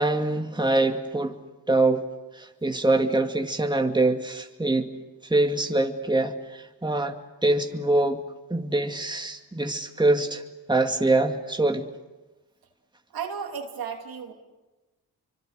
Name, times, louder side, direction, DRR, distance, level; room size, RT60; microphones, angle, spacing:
voice 1, 0.0-1.4 1.7-2.1 2.3-4.9 5.3-8.2 8.5-10.4 10.7-11.9, right 2 dB, 10° right, 2.2 m, -24 dB
voice 2, 13.1-14.3, right 6 dB, 90° right, 2.9 m, -34 dB
30.0 x 25.0 x 6.7 m
cardioid pair, 55°, 35 cm